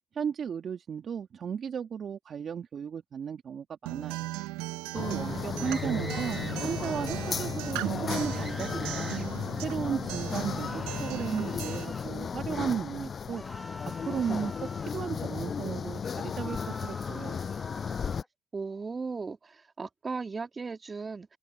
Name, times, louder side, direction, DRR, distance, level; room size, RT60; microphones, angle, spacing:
voice 1, 0.1-4.3 4.9-9.2 9.6-13.4 14.0-17.5, right 7 dB, 50° right, 2.2 m, -35 dB
Acoustic guitar, 3.9-11.8, right 20 dB, 80° right, 1.3 m, -37 dB
sound 1, 4.9-18.2, left 6 dB, 45° left, 6.4 m, -35 dB
sound 2, 5.6-6.6 8.3-9.3 10.5-12.1 13.3-15.0 16.1-18.2, left 1 dB, 10° left, 1.8 m, -45 dB
voice 2, 18.5-21.4, right 4 dB, 30° right, 2.9 m, -37 dB
open air
supercardioid pair, 65°, 0 cm